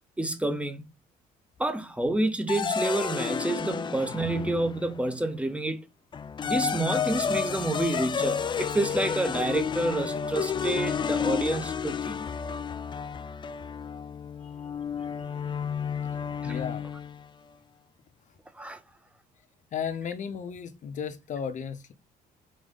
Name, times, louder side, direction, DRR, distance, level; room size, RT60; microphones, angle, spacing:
voice 1, 0.2-0.9 1.6-5.9 6.4-12.3 16.4-16.6 18.5-18.8, right 2 dB, 5° right, 0.9 m, -29 dB
sound 1, 2.5-5.1 6.1-17.2, left 6 dB, 25° left, 0.4 m, -31 dB
voice 2, 16.4-16.8 19.7-21.9, left 7 dB, 45° left, 0.9 m, -34 dB
4.6 x 3.9 x 5.3 m
cardioid pair, 110°, 17 cm